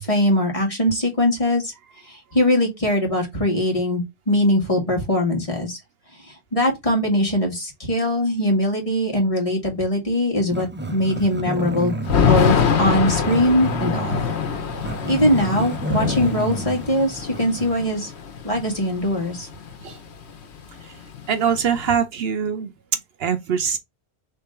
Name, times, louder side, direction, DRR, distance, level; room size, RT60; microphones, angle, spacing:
voice 1, 0.0-1.7 2.1-5.8 6.3-12.0 12.3-12.5 12.8-14.2 15.0-18.1 18.4-19.5, left 1 dB, 30° left, 1.9 m, -21 dB
Growling, 10.5-17.8, right 1 dB, 20° right, 0.3 m, -31 dB
Thunder / Rain, 12.1-19.9 20.2-20.3 20.6-21.9, left 6 dB, 80° left, 1.2 m, -24 dB
voice 2, 21.3-23.8, right 7 dB, 70° right, 0.9 m, -23 dB
3.7 x 3.3 x 4.4 m
omnidirectional pair, 1.1 m